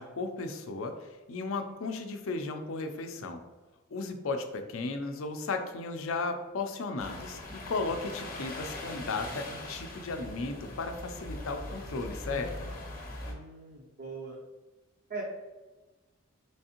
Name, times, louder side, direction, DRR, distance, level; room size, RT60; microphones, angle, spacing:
voice 1, 0.0-3.4 3.9-12.5, left 3 dB, 70° left, 6 dB, 0.4 m, -35 dB
sound 1, 7.0-13.3, left 1 dB, 40° left, 0.7 m, -41 dB
voice 2, 13.3-14.4 15.1-15.2, right 4 dB, 45° right, -2 dB, 0.5 m, -41 dB
3.4 x 3.2 x 2.8 m, 1.2 s
head